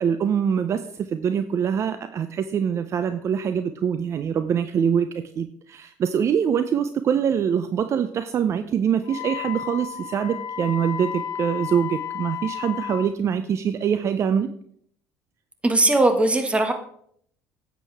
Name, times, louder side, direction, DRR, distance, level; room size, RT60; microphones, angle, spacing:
voice 1, 0.0-5.1 5.4-14.5, right 8 dB, 50° right, 11 dB, 0.6 m, -24 dB
Wind instrument woodwind instrument, 9.0-13.1, left 10 dB, 55° left, 1.3 m, -32 dB
voice 2, 15.6-16.7, right 2 dB, 20° right, 6 dB, 1.8 m, -19 dB
10.0 x 8.2 x 3.5 m, 0.65 s
supercardioid pair, 85°, 6 cm